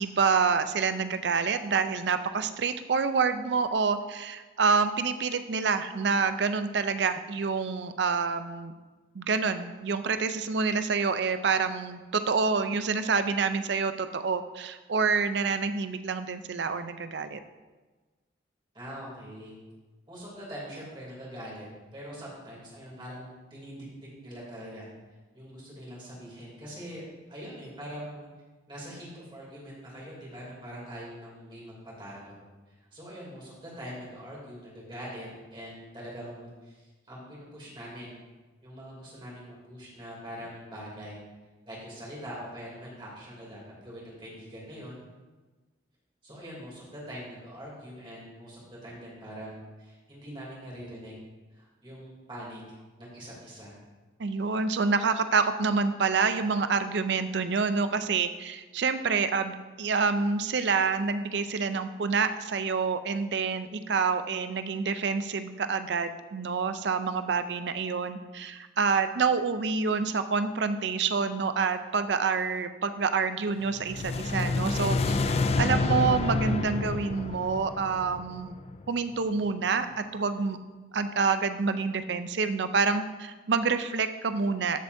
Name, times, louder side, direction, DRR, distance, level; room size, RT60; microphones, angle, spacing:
voice 1, 0.0-8.7 9.1-17.4 54.2-78.5 78.9-80.6 80.9-84.8, right 5 dB, 65° right, 10 dB, 0.5 m, -27 dB
voice 2, 18.7-19.6 20.1-21.7 21.9-23.9 24.2-24.9 25.3-27.0 27.3-28.3 28.7-32.4 32.9-38.1 38.6-41.2 41.6-45.0 46.2-51.2 51.5-52.6 53.0-53.7, equal, 25° right, -5 dB, 2.8 m, -43 dB
sound 1, 73.7-78.9, left 3 dB, 35° left, 0.3 m, -28 dB
13.0 x 7.0 x 2.7 m, 1.3 s
head